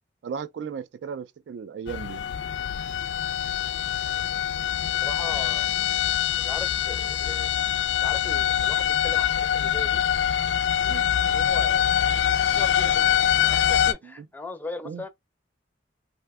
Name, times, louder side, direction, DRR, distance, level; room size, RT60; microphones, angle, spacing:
voice 1, 0.2-2.3 10.9-11.0 14.0-14.3 14.8-15.0, right 6 dB, 80° right, 0.3 m, -36 dB
sound 1, 1.9-13.9, left 10 dB, 80° left, 0.3 m, -24 dB
voice 2, 4.9-5.7 6.4-7.5 8.0-10.0 10.8-11.8 12.4-13.1 13.4-15.1, left 2 dB, 10° left, 0.4 m, -39 dB
2.6 x 2.1 x 3.4 m
head